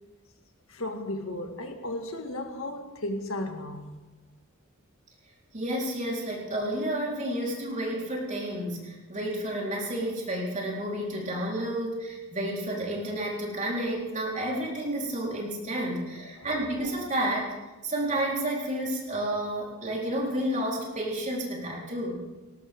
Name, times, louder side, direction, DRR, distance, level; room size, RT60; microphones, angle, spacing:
voice 1, 0.7-3.9 7.2-7.3 16.2-16.5, left 1 dB, 85° left, 1.9 m, -35 dB
voice 2, 5.5-17.5 17.8-22.2, right 1 dB, 35° right, 4.0 m, -31 dB
19.0 x 18.0 x 3.7 m
head